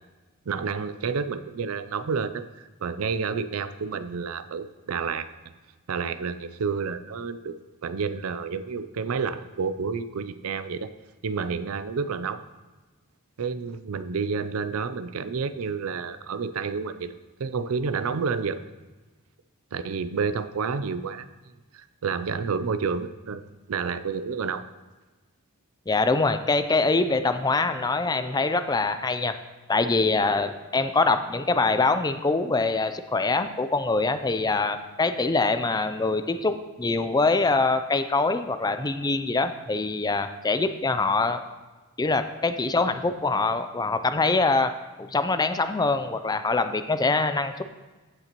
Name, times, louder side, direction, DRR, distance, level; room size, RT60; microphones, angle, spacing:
voice 1, 0.5-5.3 5.9-7.5 7.8-10.9 11.2-12.4 13.4-17.1 17.4-18.6 19.7-21.3 21.7-24.6, right 5 dB, 70° right, 12 dB, 0.5 m, -30 dB
voice 2, 25.9-29.3 29.7-41.4 42.0-44.7 45.0-47.6, left 3 dB, 20° left, 9 dB, 0.4 m, -24 dB
15.5 x 6.7 x 3.0 m, 1.2 s
head